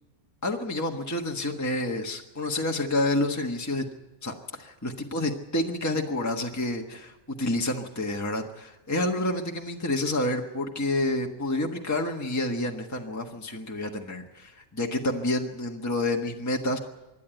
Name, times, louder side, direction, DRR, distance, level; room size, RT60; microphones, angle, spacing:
voice 1, 0.4-3.8 4.2-4.3 4.6-16.8, left 1 dB, 15° left, 1 dB, 1.3 m, -29 dB
26.0 x 11.0 x 9.1 m, 1.1 s
omnidirectional pair, 1.3 m